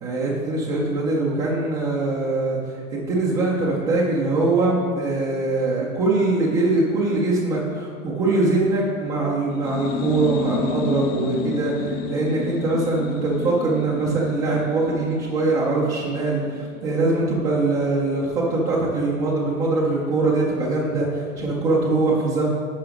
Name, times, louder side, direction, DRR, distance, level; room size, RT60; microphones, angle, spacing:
voice 1, 0.0-22.5, right 2 dB, 10° right, -5 dB, 0.3 m, -22 dB
sound 1, 9.5-17.0, left 3 dB, 70° left, 1.0 m, -31 dB
10.5 x 4.9 x 5.0 m, 2.1 s
supercardioid pair, 150°, 40 cm